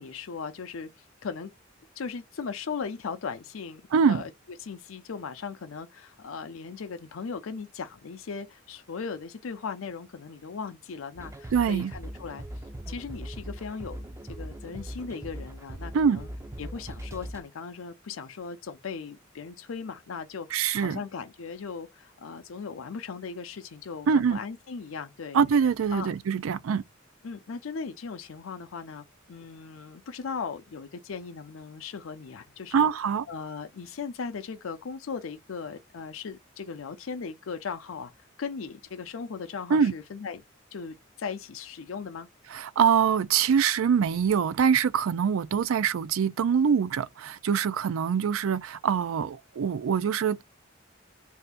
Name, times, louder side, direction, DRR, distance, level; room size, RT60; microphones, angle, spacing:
voice 1, 0.0-1.5 2.0-3.8 4.1-4.3 4.6-12.4 12.9-16.3 16.6-25.4 25.9-26.1 27.2-32.9 33.3-38.1 38.4-40.4 40.7-42.3, left 5 dB, 80° left, 0.5 m, -38 dB
voice 2, 3.9-4.2 11.5-11.9 15.9-16.2 20.5-21.0 24.1-24.4 25.3-26.8 32.7-33.2 39.7-39.9 42.5-50.4, right 7 dB, 90° right, 0.4 m, -24 dB
sound 1, 11.2-17.4, right 1 dB, 15° right, 0.4 m, -40 dB
2.7 x 2.5 x 3.4 m
head